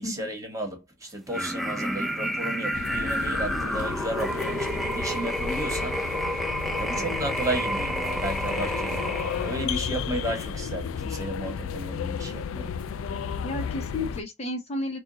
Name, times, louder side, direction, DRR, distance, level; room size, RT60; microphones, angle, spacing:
voice 1, 0.0-9.1 9.4-12.7, right 1 dB, 15° right, 1.4 m, -33 dB
sound 1, 1.3-9.6, equal, ahead, 0.6 m, -30 dB
sound 2, 2.7-14.2, left 7 dB, 80° left, 0.3 m, -33 dB
sound 3, 6.4-14.1, right 4 dB, 45° right, 0.5 m, -45 dB
voice 2, 13.4-15.0, left 1 dB, 30° left, 0.8 m, -32 dB
4.3 x 2.4 x 3.9 m
head